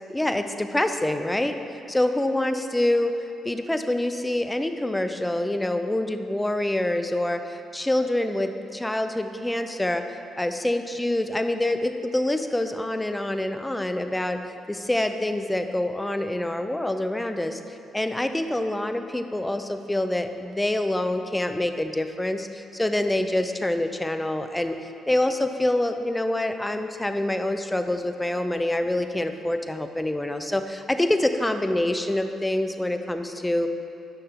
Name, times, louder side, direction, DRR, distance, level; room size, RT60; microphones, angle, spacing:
voice 1, 0.1-1.6 1.9-10.1 10.4-14.4 14.7-33.7, left 1 dB, 10° left, 8 dB, 0.5 m, -26 dB
10.0 x 5.7 x 3.6 m, 2.8 s
cardioid pair, 90°, 0 cm